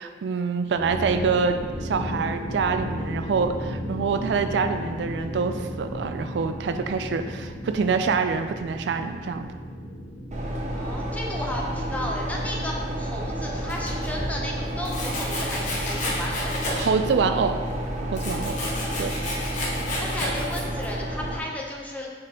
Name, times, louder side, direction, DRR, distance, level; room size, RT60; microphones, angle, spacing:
voice 1, 0.0-9.5 16.7-17.6 18.1-18.6 19.0-19.1, right 5 dB, 70° right, 7 dB, 0.3 m, -26 dB
sound 1, 0.6-19.4, equal, 85° left, 1.2 m, -36 dB
sound 2, 10.3-21.4, right 1 dB, 40° right, 0.7 m, -30 dB
voice 2, 10.7-16.8 18.7-19.2 20.0-22.1, left 1 dB, 10° left, -2 dB, 0.8 m, -34 dB
Domestic sounds home sounds, 13.7-14.3 14.9-17.1 17.4-20.9, left 1 dB, 45° left, 1.5 m, -31 dB
7.1 x 5.0 x 2.9 m, 1.5 s
head